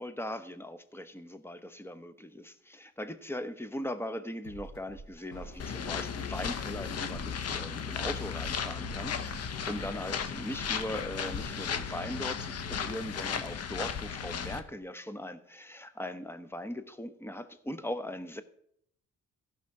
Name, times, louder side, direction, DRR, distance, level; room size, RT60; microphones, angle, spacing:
voice 1, 0.0-18.4, left 1 dB, 10° left, 1.0 m, -39 dB
sound 1, 4.4-11.4, right 1 dB, 75° left, 3.9 m, -47 dB
sound 2, 5.6-14.6, left 7 dB, 55° left, 1.0 m, -35 dB
15.0 x 5.9 x 4.8 m
cardioid pair, 90°, 30 cm